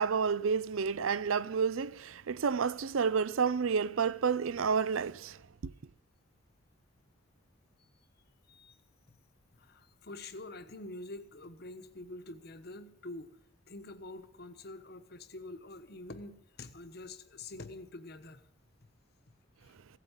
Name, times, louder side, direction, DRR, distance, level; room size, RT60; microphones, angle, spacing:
voice 1, 0.0-5.4 5.6-5.7, right 6 dB, 75° right, 0.5 m, -30 dB
voice 2, 9.5-13.3 13.7-18.4 19.6-19.7, left 2 dB, 50° left, 1.2 m, -46 dB
16.0 x 8.3 x 9.6 m
head